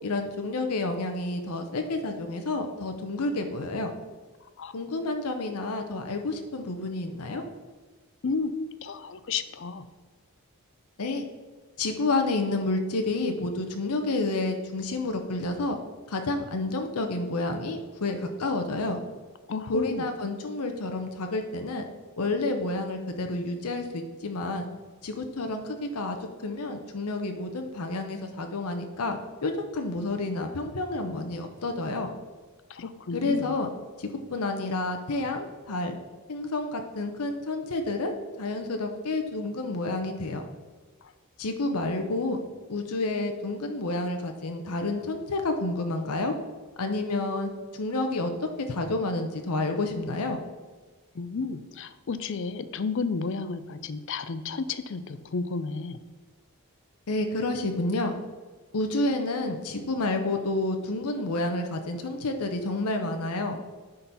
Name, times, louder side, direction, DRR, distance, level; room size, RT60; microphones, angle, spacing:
voice 1, 0.0-3.9 4.7-7.4 11.0-11.3 11.8-15.8 16.1-19.0 19.7-21.8 22.2-24.7 25.0-26.2 26.4-32.1 33.1-33.7 34.0-36.0 36.3-40.4 41.4-42.4 42.7-46.3 46.8-48.3 48.7-50.4 57.1-58.1 58.7-63.6, left 2 dB, 90° left, 5 dB, 0.8 m, -29 dB
voice 2, 8.2-9.8 19.5-20.1 32.7-33.6 41.0-41.1 51.1-56.0, left 4 dB, 55° left, 12 dB, 0.5 m, -32 dB
10.0 x 3.9 x 4.0 m, 1.4 s
head